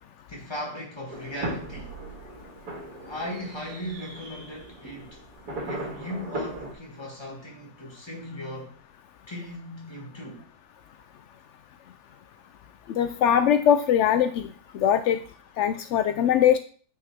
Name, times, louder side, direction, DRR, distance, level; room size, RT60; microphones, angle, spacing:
voice 1, 0.3-1.9 3.1-5.2 5.6-8.8 9.3-10.4, left 1 dB, 15° left, 1.9 m, -38 dB
sound 1, 1.1-6.7, right 1 dB, 70° right, 2.5 m, -37 dB
voice 2, 13.0-14.5 14.7-15.2 15.6-16.6, left 9 dB, 75° left, 0.6 m, -21 dB
9.0 x 5.5 x 3.5 m
omnidirectional pair, 1.8 m